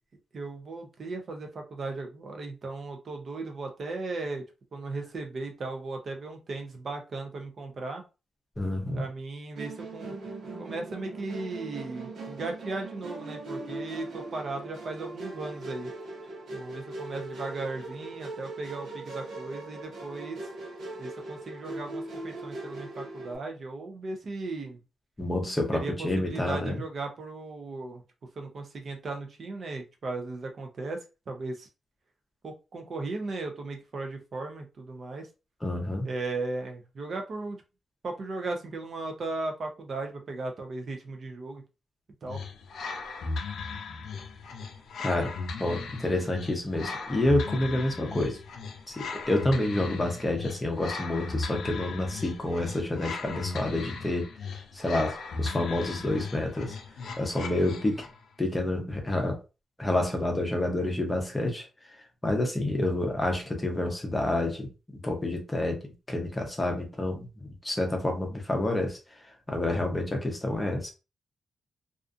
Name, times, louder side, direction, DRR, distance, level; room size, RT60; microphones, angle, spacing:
voice 1, 0.3-4.4 4.7-8.0 8.9-10.1 10.6-15.9 16.5-20.5 21.0-24.8 25.7-28.0 28.4-31.0 31.3-31.7 32.4-35.3 36.0-37.6 38.0-41.6 42.2-42.4, right 3 dB, 45° right, 0.5 m, -36 dB
voice 2, 8.6-9.0 25.2-26.8 35.6-36.1 45.0-45.3 45.6-48.4 48.9-54.3 54.7-56.7 57.2-58.0 58.4-59.4 59.8-61.6 62.2-67.3 67.6-69.0 69.5-70.9, left 1 dB, 15° left, 0.6 m, -28 dB
Musical instrument, 9.6-23.4, right 2 dB, 90° right, 0.9 m, -40 dB
sound 1, 42.3-58.2, left 4 dB, 80° left, 0.4 m, -37 dB
2.4 x 2.4 x 2.4 m
wide cardioid pair, 165°, 0 cm